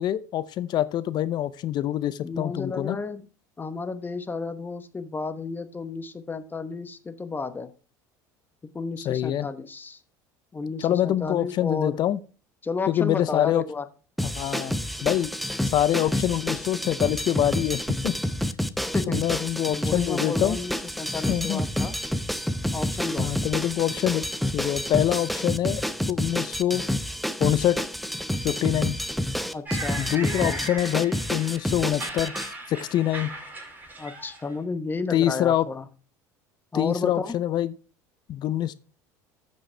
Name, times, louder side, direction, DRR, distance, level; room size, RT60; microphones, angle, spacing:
voice 1, 0.0-3.0 9.0-9.5 10.8-12.2 12.9-13.6 14.2-15.3 15.7-18.1 19.1-20.6 21.3-21.6 23.2-24.3 24.5-25.8 26.1-26.8 27.4-27.8 28.4-28.9 30.0-32.4 32.7-33.3 35.1-35.7 36.7-37.7 38.3-38.7, left 12 dB, 50° left, 0.6 m, -25 dB
voice 2, 2.2-3.3 3.6-7.7 8.7-10.0 10.5-12.0 12.6-13.9 18.9-19.2 19.7-21.9 22.7-23.3 29.5-30.6 34.0-35.9 36.7-37.4, left 4 dB, 20° left, 1.0 m, -32 dB
sound 1, 14.2-32.5, equal, ahead, 0.7 m, -29 dB
sound 2, 29.7-34.6, right 2 dB, 20° right, 5.0 m, -37 dB
13.5 x 5.4 x 3.3 m
hypercardioid pair, 85°, 9 cm